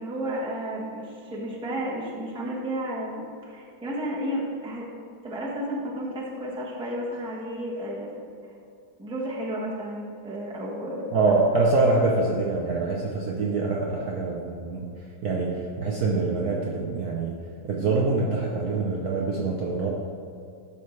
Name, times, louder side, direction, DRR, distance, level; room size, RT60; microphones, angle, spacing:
voice 1, 0.0-4.9 5.2-8.2 9.0-11.1, equal, 5° right, -4 dB, 1.0 m, -32 dB
voice 2, 11.1-14.9 15.2-17.3 17.6-19.9, right 3 dB, 60° right, -2 dB, 1.1 m, -25 dB
12.5 x 5.7 x 3.3 m, 2.4 s
omnidirectional pair, 2.2 m